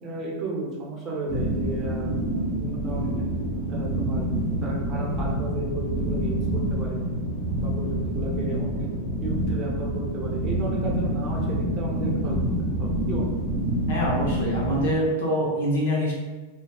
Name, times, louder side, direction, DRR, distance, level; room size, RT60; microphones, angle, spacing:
voice 1, 0.0-2.1 2.4-3.3 3.7-4.3 4.6-7.0 7.6-8.9 9.2-12.5 12.8-13.4, right 2 dB, 35° right, -3 dB, 0.7 m, -34 dB
sound 1, 1.3-14.9, right 1 dB, 10° left, 0.8 m, -27 dB
voice 2, 13.9-16.1, equal, 70° left, -3 dB, 0.8 m, -25 dB
2.6 x 2.2 x 2.2 m, 1.2 s
hypercardioid pair, 110°, 0 cm